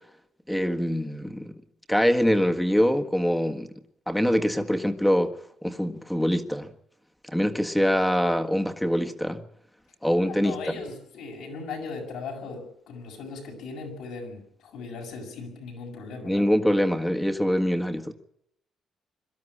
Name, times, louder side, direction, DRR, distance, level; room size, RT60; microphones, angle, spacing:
voice 1, 0.5-1.6 1.9-3.7 4.1-5.3 5.6-6.7 7.3-9.4 10.0-10.7 16.2-18.1, equal, 5° left, 1.6 m, -24 dB
voice 2, 10.3-16.5, left 4 dB, 85° left, 7.0 m, -38 dB
23.0 x 12.5 x 9.9 m
cardioid pair, 90°, 0 cm